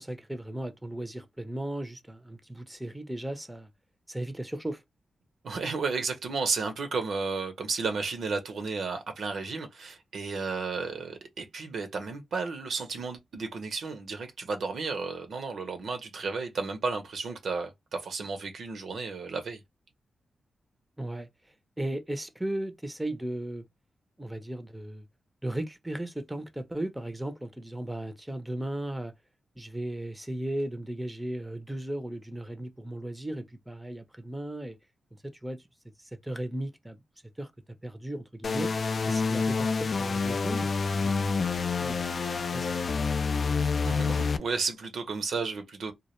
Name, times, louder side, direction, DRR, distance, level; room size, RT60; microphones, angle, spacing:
voice 1, 0.0-3.7 4.1-4.8 21.0-21.3 21.8-23.6 24.2-25.0 25.4-29.1 29.6-34.8 35.2-35.6 36.2-37.0 37.4-37.5 37.8-38.7 39.1-42.1 42.5-43.0, right 1 dB, 10° right, 0.5 m, -36 dB
voice 2, 5.4-19.6 43.6-45.9, right 4 dB, 75° right, 0.6 m, -33 dB
sound 1, 38.4-44.4, left 4 dB, 55° left, 0.3 m, -28 dB
2.2 x 2.1 x 2.9 m
cardioid pair, 75°, 0 cm